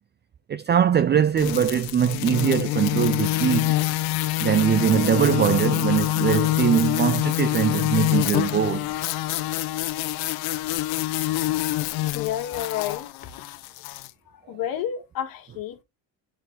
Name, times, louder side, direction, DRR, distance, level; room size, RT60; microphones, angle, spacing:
voice 1, 0.5-3.7 4.4-8.9, right 9 dB, 30° right, 0.5 m, -22 dB
sound 1, 1.4-14.1, left 16 dB, 85° left, 0.8 m, -26 dB
voice 2, 12.1-13.1 14.5-15.8, left 11 dB, 65° left, 2.0 m, -30 dB
9.6 x 4.2 x 3.8 m
cardioid pair, 120°, 37 cm